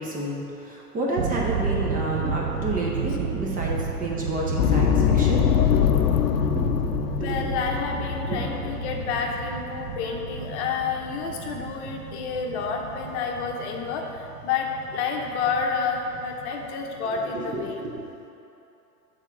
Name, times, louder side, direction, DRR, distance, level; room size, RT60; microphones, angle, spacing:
voice 1, 0.0-5.9 6.3-6.8 7.1-7.4 8.2-8.4 17.3-18.3, right 1 dB, 20° right, -3 dB, 0.7 m, -30 dB
sound 1, 1.2-17.4, right 6 dB, 75° right, 0.7 m, -33 dB
sound 2, 4.6-9.6, left 9 dB, 80° left, 0.6 m, -23 dB
voice 2, 7.2-17.8, left 5 dB, 45° left, 1 dB, 0.8 m, -29 dB
6.6 x 3.7 x 5.9 m, 2.9 s
hypercardioid pair, 110°, 47 cm